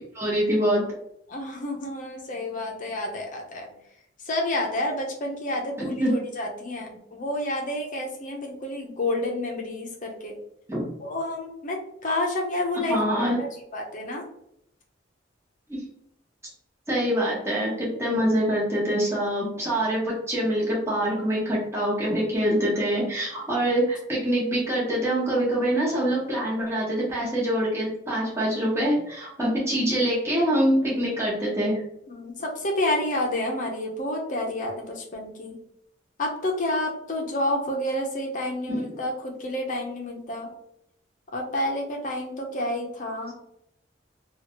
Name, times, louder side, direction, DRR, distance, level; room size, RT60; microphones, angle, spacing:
voice 1, 0.1-0.8 6.0-6.1 10.7-10.8 12.9-13.4 15.7-15.8 16.9-31.8 38.7-38.9, equal, 15° right, -6 dB, 1.1 m, -25 dB
voice 2, 1.3-3.7 4.2-10.3 11.0-13.5 13.7-14.2 32.1-35.6 36.2-40.5 41.3-43.3, left 1 dB, 45° left, 1 dB, 0.7 m, -29 dB
2.9 x 2.4 x 2.9 m, 0.75 s
head